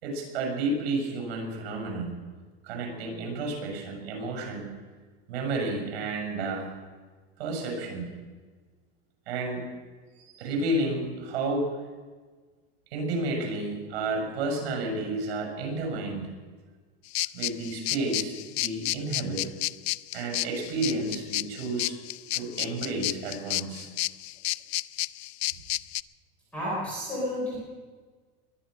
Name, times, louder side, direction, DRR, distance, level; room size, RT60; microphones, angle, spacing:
voice 1, 0.0-2.2 2.6-4.7 5.3-6.7 7.4-8.1 9.3-9.6 10.2-11.8 12.9-16.3 17.3-19.5 20.1-22.0 22.3-23.9, right 2 dB, 65° right, 3 dB, 6.4 m, -31 dB
sound 1, 17.1-26.0, left 18 dB, 80° left, 0.5 m, -31 dB
voice 2, 26.5-27.6, left 1 dB, 5° left, -7 dB, 4.7 m, -31 dB
21.5 x 10.5 x 6.4 m, 1.4 s
supercardioid pair, 175°, 32 cm